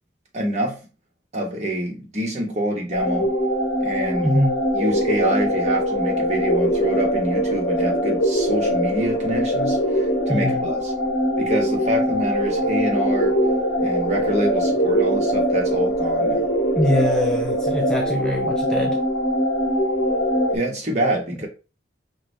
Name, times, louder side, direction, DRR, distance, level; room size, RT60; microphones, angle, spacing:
voice 1, 0.3-0.8 1.3-3.3 3.8-4.3 4.7-10.9 11.4-13.4 13.8-16.5 20.5-21.5, equal, 35° right, 1.1 m, -26 dB
sound 1, 2.9-20.6, equal, 75° left, 0.8 m, -22 dB
voice 2, 4.2-4.6 10.3-10.6 16.8-19.0, left 1 dB, 5° left, 0.4 m, -23 dB
4.9 x 2.6 x 3.2 m
head